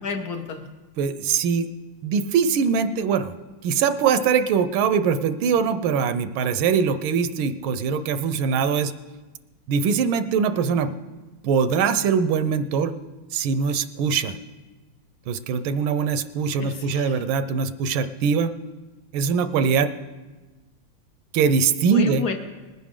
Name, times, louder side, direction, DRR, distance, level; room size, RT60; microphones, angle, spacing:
voice 1, 0.0-0.7 16.6-17.2 21.8-22.3, left 5 dB, 60° left, 5 dB, 1.3 m, -31 dB
voice 2, 1.0-1.7 2.0-3.3 3.6-8.9 9.7-10.9 11.4-12.9 13.3-14.3 15.3-18.5 19.1-19.9 21.3-22.2, right 6 dB, 80° right, 11 dB, 1.5 m, -22 dB
20.0 x 10.0 x 3.7 m, 1.2 s
omnidirectional pair, 2.2 m